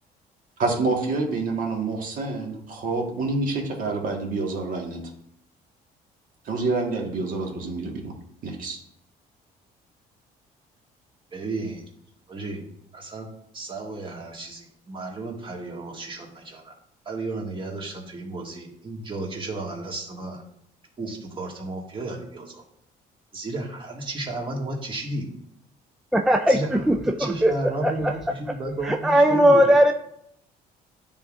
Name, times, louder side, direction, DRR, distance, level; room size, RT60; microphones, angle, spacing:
voice 1, 0.6-5.0 6.4-8.1 8.4-8.8, right 3 dB, 55° right, 1 dB, 1.5 m, -27 dB
voice 2, 11.3-11.8 12.3-12.7 12.9-13.3 13.5-16.7 17.0-20.4 21.0-22.6 23.3-25.3 26.5-26.8 27.2-29.7, right 2 dB, 30° right, -1 dB, 1.6 m, -33 dB
voice 3, 26.1-26.6 26.9-27.0 27.2-27.5 27.8-27.9 28.9-29.9, equal, ahead, 3 dB, 0.3 m, -17 dB
10.5 x 3.6 x 2.4 m, 0.73 s
cardioid pair, 110°, 17 cm